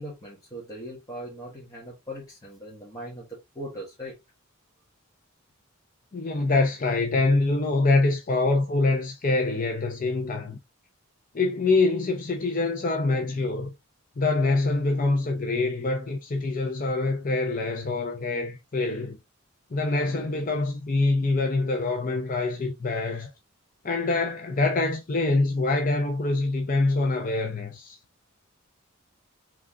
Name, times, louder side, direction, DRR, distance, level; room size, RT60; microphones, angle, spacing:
voice 1, 0.0-4.2, equal, 15° left, 1.3 m, -39 dB
voice 2, 6.1-10.6 11.3-13.7 14.2-19.2 19.7-23.3 23.8-28.0, left 3 dB, 40° left, 0.6 m, -25 dB
3.8 x 3.4 x 3.6 m
head